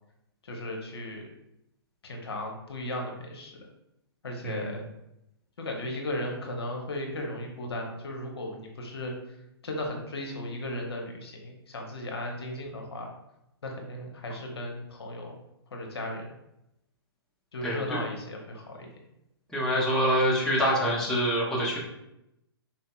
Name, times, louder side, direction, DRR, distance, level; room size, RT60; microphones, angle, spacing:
voice 1, 0.4-1.2 2.0-3.6 4.2-4.8 5.6-9.1 9.6-13.1 13.6-15.4 15.7-16.3 17.5-18.9, left 1 dB, 70° left, 1 dB, 0.7 m, -36 dB
voice 2, 17.6-18.0 19.5-21.8, equal, 5° left, -7 dB, 0.8 m, -25 dB
4.1 x 2.6 x 2.3 m, 0.86 s
figure-of-eight pair, 120°, 14 cm